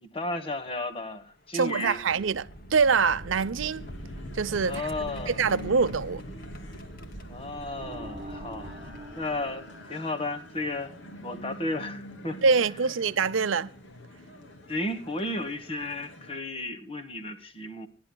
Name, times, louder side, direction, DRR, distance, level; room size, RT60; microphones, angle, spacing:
voice 1, 0.0-2.0 4.6-5.4 7.3-10.9 11.2-12.4 14.7-17.9, left 2 dB, 30° left, 1.3 m, -34 dB
sound 1, 0.5-9.8 10.7-10.8 12.3-12.5 13.3-13.5 15.1-15.2 15.6-15.8, equal, 50° left, 2.3 m, -44 dB
voice 2, 1.5-3.8 4.3-4.9 5.3-6.2 12.4-13.7, right 5 dB, 80° right, 0.6 m, -25 dB
sound 2, 3.6-16.4, equal, 70° left, 2.9 m, -46 dB
sound 3, 7.7-10.7, right 1 dB, 25° right, 3.3 m, -45 dB
30.0 x 11.0 x 2.2 m
head